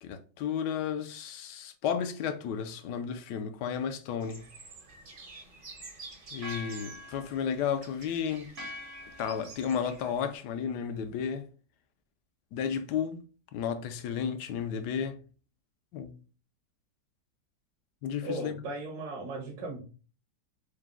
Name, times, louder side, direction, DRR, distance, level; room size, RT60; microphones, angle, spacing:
voice 1, 0.0-4.4 6.3-8.7 9.2-11.5 12.5-13.2 13.5-15.2 15.9-16.2 18.0-18.6, left 7 dB, 75° left, 1.1 m, -33 dB
sound 1, 4.2-10.3, right 1 dB, 45° right, 0.8 m, -46 dB
voice 2, 18.2-19.8, right 2 dB, 65° right, 1.3 m, -37 dB
4.9 x 2.2 x 3.5 m
omnidirectional pair, 1.9 m